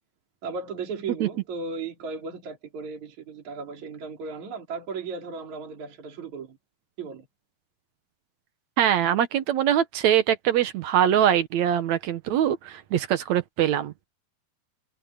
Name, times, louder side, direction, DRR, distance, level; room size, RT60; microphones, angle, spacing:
voice 1, 0.4-6.6 7.0-7.3, right 4 dB, 50° right, 5.0 m, -36 dB
voice 2, 8.8-13.9, right 10 dB, 65° right, 1.9 m, -23 dB
omnidirectional pair, 4.3 m